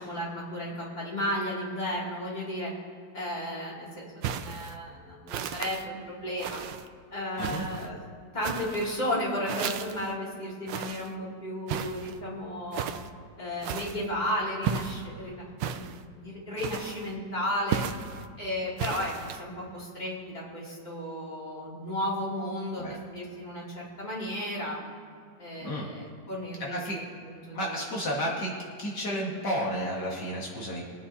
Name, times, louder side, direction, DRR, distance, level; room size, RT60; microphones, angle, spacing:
voice 1, 0.0-2.7 3.1-6.6 7.1-8.0 8.3-12.9 13.4-17.8 18.4-24.8 25.4-26.8 27.2-27.8, left 1 dB, 25° left, -5 dB, 2.8 m, -34 dB
sound 1, 4.2-4.8 5.3-5.8 6.4-6.9 7.4-7.9 8.4-8.9 9.5-10.1 10.7-11.1 11.7-12.2 12.7-13.1 13.6-14.1 14.6-15.1 15.6-16.0 16.6-17.1 17.7-18.2 18.8-19.4, right 8 dB, 85° right, 1.3 m, -34 dB
voice 2, 26.6-27.0 27.5-30.8, equal, 65° left, -3 dB, 2.3 m, -32 dB
22.5 x 9.0 x 2.8 m, 2.3 s
omnidirectional pair, 1.9 m